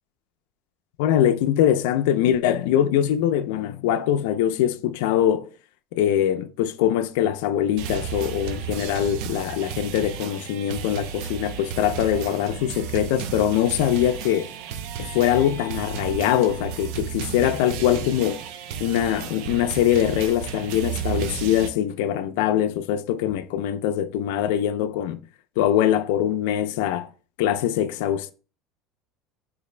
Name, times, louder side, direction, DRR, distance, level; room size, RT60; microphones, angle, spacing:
voice 1, 1.0-5.5 5.9-14.5 15.0-18.4 18.8-25.2 25.6-27.1 27.4-28.3, left 11 dB, 75° left, 0.4 m, -23 dB
sound 1, 7.8-21.7, right 9 dB, 65° right, 0.4 m, -33 dB
4.1 x 2.5 x 3.2 m
cardioid pair, 145°, 0 cm